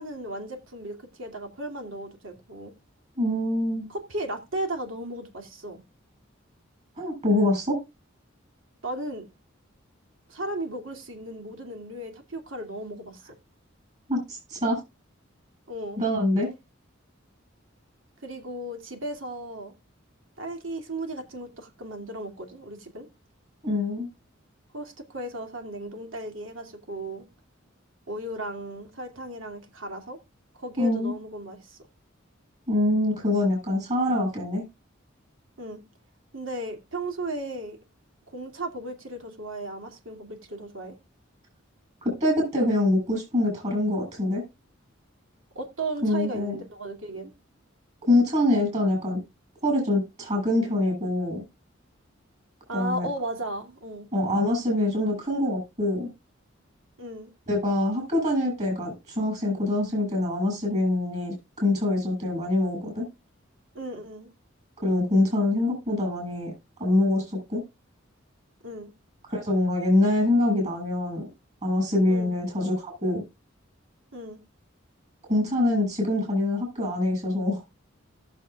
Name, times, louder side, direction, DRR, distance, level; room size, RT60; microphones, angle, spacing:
voice 1, 0.0-2.7 3.9-5.8 8.8-9.3 10.3-13.4 15.7-16.0 18.2-19.7 20.4-23.1 24.7-27.3 28.1-30.2 30.5-31.8 35.6-35.8 36.3-37.8 38.3-41.0 45.5-47.3 52.7-54.1 57.0-57.3 63.7-64.3 68.6-68.9 72.1-72.4 74.1-74.4, right 1 dB, 75° right, 2.6 m, -35 dB
voice 2, 3.2-3.9 7.0-7.8 14.1-14.8 16.0-16.5 23.6-24.1 30.8-31.1 32.7-34.7 42.0-44.4 46.0-46.6 48.0-49.2 49.6-51.4 52.7-53.1 54.1-56.1 57.5-63.1 64.8-66.5 66.8-67.6 69.3-71.3 71.6-73.2 75.3-77.6, left 1 dB, 35° right, 7.6 m, -24 dB
18.0 x 7.2 x 2.4 m
head